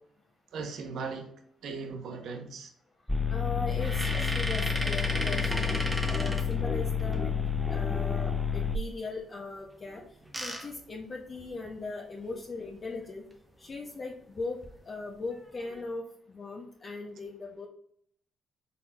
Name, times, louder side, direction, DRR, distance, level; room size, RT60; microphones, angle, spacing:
voice 1, 0.5-1.3 1.6-2.7 4.1-4.2, right 4 dB, 75° right, 4 dB, 0.8 m, -38 dB
sound 1, 3.1-8.8, left 6 dB, 5° left, 0.3 m, -29 dB
voice 2, 3.3-7.3 7.7-10.0 10.4-13.2 13.6-14.6 14.8-16.0 16.3-17.7, left 3 dB, 40° left, -1 dB, 0.6 m, -39 dB
sound 2, 3.7-7.2 9.9-11.8 12.3-12.4 12.7-12.9 14.4-14.7 15.3-15.8, right 1 dB, 10° right, 0.8 m, -35 dB
4.1 x 4.0 x 2.3 m, 0.66 s
cardioid pair, 90°, 0 cm